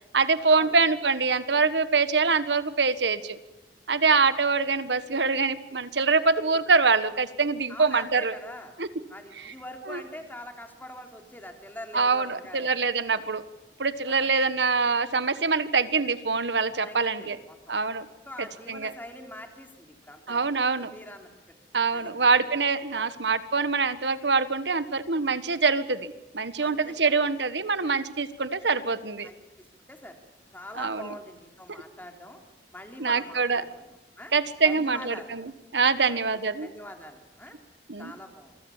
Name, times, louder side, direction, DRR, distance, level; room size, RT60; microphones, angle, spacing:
voice 1, 0.1-3.4 3.9-8.3 8.8-8.9 9.9-10.0 11.9-13.4 13.8-17.4 17.7-18.0 18.7-18.9 20.3-20.9 21.7-29.3 30.8-31.1 33.0-33.6 34.3-36.7 37.9-38.1, right 4 dB, 85° right, 13 dB, 1.5 m, -24 dB
voice 2, 7.7-8.8 9.1-12.7 13.1-13.2 14.1-14.3 16.8-17.7 18.3-20.5 20.9-21.3 21.9-22.3 22.9-23.1 26.6-27.2 27.8-28.0 29.2-30.2 30.5-32.4 32.7-33.9 34.2-34.3 34.6-35.3 36.0-36.2 36.6-37.6 38.0-38.6, left 1 dB, 10° left, 4 dB, 3.4 m, -44 dB
26.5 x 24.0 x 7.3 m, 1.0 s
head